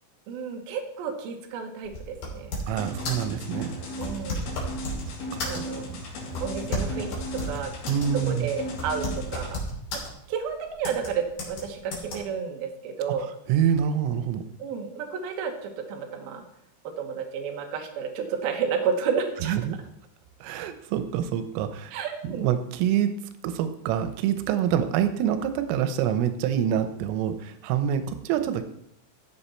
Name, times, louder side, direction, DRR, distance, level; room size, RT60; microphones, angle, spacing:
voice 1, 0.3-2.5 4.0-4.5 5.4-5.9 6.4-7.7 8.1-9.6 10.3-13.3 14.6-16.4 16.8-19.5 21.9-22.5, right 6 dB, 65° right, 3 dB, 2.8 m, -31 dB
sound 1, 1.9-2.8 3.1-3.3 4.0-5.1 5.4-5.8 6.4-8.1 8.4-8.5 8.8-10.1 10.8-11.1 11.4-11.6 11.9-12.2, left 1 dB, 45° left, 4.1 m, -32 dB
voice 2, 2.7-3.7 5.3-5.6 7.9-8.5 13.5-14.4 19.4-19.8 20.4-21.9 22.2-23.2 23.4-28.7, right 9 dB, 90° right, 10 dB, 3.4 m, -26 dB
sound 2, 2.8-9.5, equal, 70° left, 4.8 m, -36 dB
15.0 x 7.7 x 4.4 m, 0.74 s
omnidirectional pair, 5.7 m